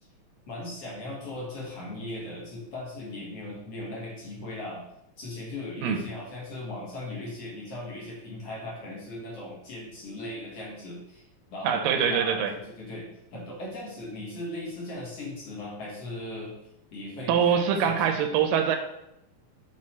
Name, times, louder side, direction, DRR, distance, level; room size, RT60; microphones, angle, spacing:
voice 1, 0.5-4.8 5.2-11.2 11.5-16.5 16.9-18.1, left 1 dB, 55° left, -5 dB, 2.2 m, -38 dB
voice 2, 11.6-12.5 17.3-18.8, right 7 dB, 85° right, 6 dB, 2.4 m, -24 dB
6.3 x 4.1 x 4.3 m, 0.84 s
omnidirectional pair, 3.9 m